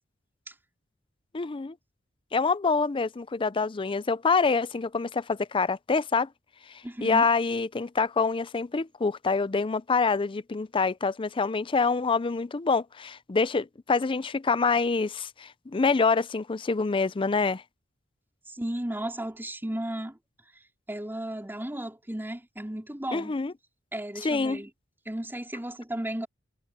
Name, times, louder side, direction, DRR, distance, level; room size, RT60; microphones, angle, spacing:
voice 1, 1.3-1.8 2.3-6.3 7.0-17.6 23.1-23.5 24.2-24.6, left 4 dB, 25° left, 0.5 m, -26 dB
voice 2, 6.8-7.2 18.5-20.2 20.9-23.3 23.9-24.7 25.1-26.3, right 1 dB, 10° right, 3.6 m, -34 dB
head